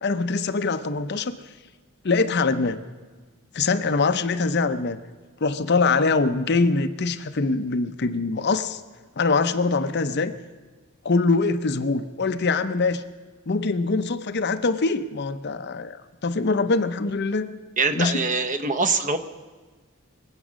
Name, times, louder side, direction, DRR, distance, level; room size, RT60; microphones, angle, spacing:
voice 1, 0.0-1.4 2.0-2.8 3.5-5.0 5.4-8.8 9.2-10.4 11.0-13.0 13.5-16.0 16.2-17.5 18.0-18.2, left 3 dB, 50° left, 10 dB, 0.6 m, -23 dB
voice 2, 17.8-19.2, right 4 dB, 35° right, 9 dB, 0.8 m, -23 dB
23.5 x 8.4 x 6.3 m, 1.4 s
head